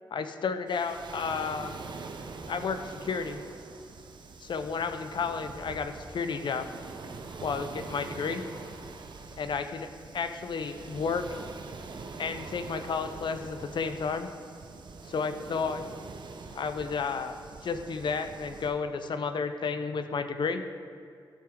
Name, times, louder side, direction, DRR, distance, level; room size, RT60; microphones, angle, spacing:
voice 1, 0.1-1.7 2.5-3.4 4.4-6.7 7.4-8.4 9.4-11.2 12.2-14.3 15.1-15.8 16.5-20.6, left 5 dB, 65° left, 9 dB, 0.7 m, -32 dB
Waves surf, 0.7-18.7, right 4 dB, 60° right, 0.8 m, -44 dB
12.5 x 7.6 x 3.8 m, 2.3 s
cardioid pair, 80°, 9 cm